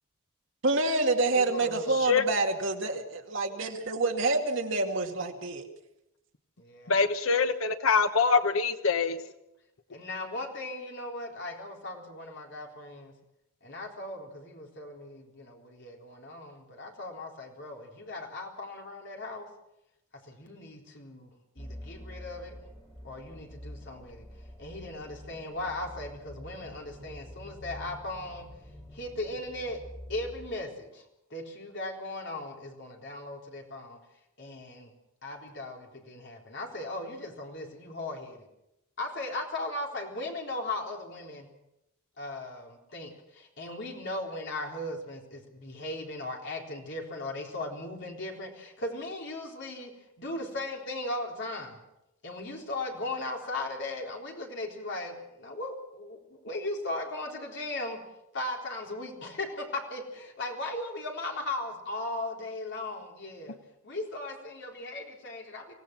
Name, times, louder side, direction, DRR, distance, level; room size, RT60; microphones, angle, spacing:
voice 1, 0.6-3.0 3.3-5.7, right 2 dB, 60° right, 2 dB, 2.3 m, -27 dB
voice 2, 1.3-2.1 6.6-6.9 9.9-13.1 13.6-19.5 20.2-22.6 23.0-24.3 24.6-28.5 28.9-29.8 30.1-31.0 31.3-34.0 34.4-34.9 35.2-38.4 39.0-41.5 42.2-51.8 52.2-58.0 58.3-63.6 63.8-65.7, left 2 dB, 55° left, 0 dB, 3.9 m, -37 dB
voice 3, 6.9-9.2, left 5 dB, 80° left, 10 dB, 1.1 m, -24 dB
sound 1, 21.6-30.5, equal, 20° left, 3.7 m, -47 dB
25.0 x 17.0 x 6.0 m, 0.87 s
head